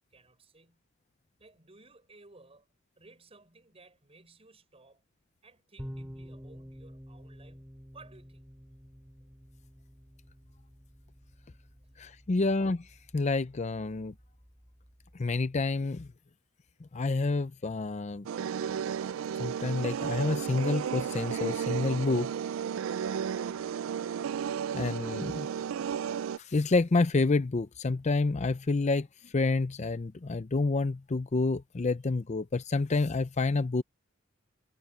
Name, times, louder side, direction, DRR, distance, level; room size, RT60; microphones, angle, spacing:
voice 1, 0.1-0.8 1.4-2.7 3.0-5.0 5.4-8.5, right 3 dB, 30° right, 6.0 m, -57 dB
sound 1, 5.8-15.2, equal, 10° right, 4.9 m, -50 dB
voice 2, 12.0-12.9 13.1-14.1 15.2-16.1 16.9-18.2 19.4-22.3 24.7-25.5 26.4-33.8, left 3 dB, 35° left, 0.5 m, -28 dB
sound 2, 18.3-26.4, right 8 dB, 70° right, 0.3 m, -33 dB
head